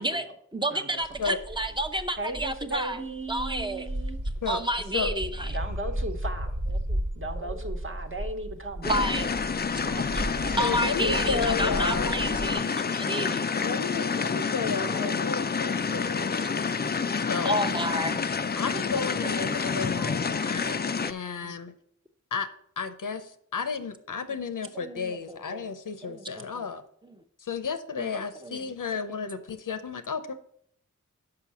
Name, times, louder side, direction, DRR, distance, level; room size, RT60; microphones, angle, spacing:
voice 1, 0.0-0.4 0.7-1.2 1.9-4.2 5.5-6.5 7.1-9.1 9.7-10.6, right 2 dB, 40° right, 5 dB, 1.1 m, -37 dB
voice 2, 0.5-3.0 3.3-3.9 4.5-5.5 6.9-7.0 7.4-7.7 8.8-9.3 10.6-13.5 14.8-15.1 15.5-15.7 17.4-18.2 19.2-19.8 20.1-20.5 21.4-21.6 24.8-25.7 26.0-26.6 28.0-28.1 28.4-28.6, right 1 dB, 15° right, 8 dB, 0.7 m, -31 dB
sound 1, 1.0-12.5, right 1 dB, 70° right, 1.3 m, -35 dB
sound 2, 8.8-21.1, left 5 dB, 35° left, 0.4 m, -28 dB
voice 3, 10.6-12.1 13.6-16.4 17.3-17.6 18.6-21.7 22.3-22.5 22.8-26.8 27.4-30.3, left 5 dB, 85° left, 10 dB, 0.7 m, -32 dB
5.9 x 5.5 x 6.8 m, 0.67 s
wide cardioid pair, 65°, 31 cm